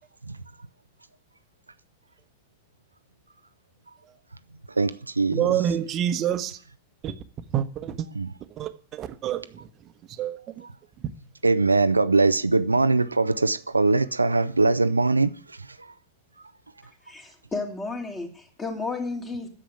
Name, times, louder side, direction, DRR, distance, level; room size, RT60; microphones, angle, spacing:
voice 1, 4.8-5.8 8.1-8.3 11.4-15.3 15.8-15.9, right 3 dB, 80° right, 0.6 m, -22 dB
voice 2, 5.3-6.6 7.0-7.1 7.5-8.1 8.6-9.7 10.2-10.6, right 10 dB, 35° right, 1.2 m, -27 dB
voice 3, 17.1-19.5, left 3 dB, 20° left, 3.0 m, -32 dB
10.5 x 7.5 x 9.6 m
figure-of-eight pair, 90°, 0 cm